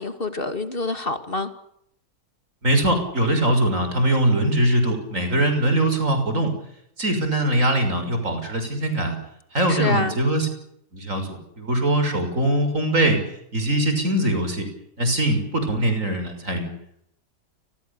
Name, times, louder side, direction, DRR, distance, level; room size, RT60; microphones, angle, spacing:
voice 1, 0.0-1.5 9.7-10.2, left 3 dB, 35° left, 9 dB, 2.5 m, -26 dB
voice 2, 2.6-6.5 7.0-9.2 9.5-10.5 10.9-13.2 13.5-14.7 15.0-16.7, right 1 dB, 50° right, 7 dB, 6.6 m, -22 dB
29.5 x 22.0 x 7.0 m, 0.74 s
omnidirectional pair, 1.8 m